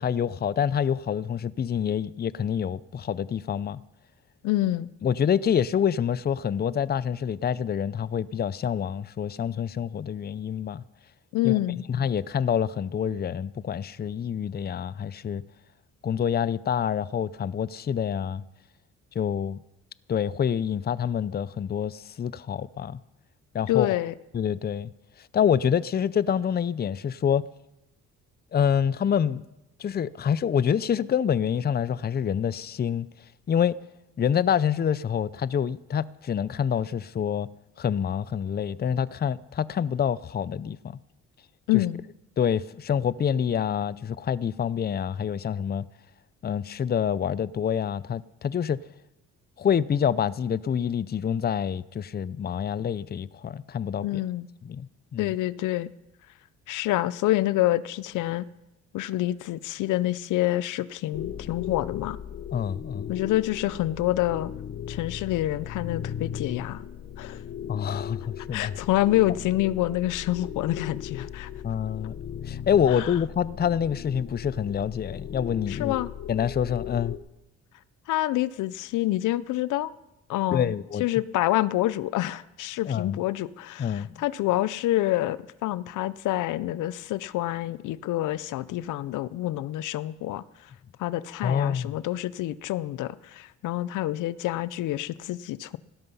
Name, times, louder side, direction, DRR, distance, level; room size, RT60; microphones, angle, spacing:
voice 1, 0.0-3.8 5.0-10.8 11.4-11.6 11.9-15.4 16.0-18.4 19.1-19.6 20.1-23.0 23.5-24.0 24.3-24.9 25.2-27.4 28.5-29.4 29.8-33.1 33.5-33.8 34.2-37.5 37.8-41.0 42.4-45.9 46.4-48.8 49.6-54.2 54.6-55.3 62.5-63.1 67.7-68.7 71.6-72.1 72.5-75.9 76.3-77.2 80.5-81.0 82.8-83.2 83.8-84.2 91.4-92.0, left 8 dB, 35° left, 0.5 m, -27 dB
voice 2, 4.4-4.9 11.3-11.9 23.7-24.1 41.7-42.0 54.0-54.5 55.2-55.9 56.7-58.4 58.9-62.2 63.1-64.5 64.9-66.9 67.2-67.4 68.5-71.5 72.9-73.1 75.7-76.1 78.1-79.9 80.3-80.7 81.0-90.4 91.0-95.8, left 15 dB, 85° left, 0.6 m, -27 dB
sound 1, 61.1-77.2, left 9 dB, 55° left, 1.1 m, -37 dB
17.0 x 12.5 x 5.5 m
cardioid pair, 90°, 30 cm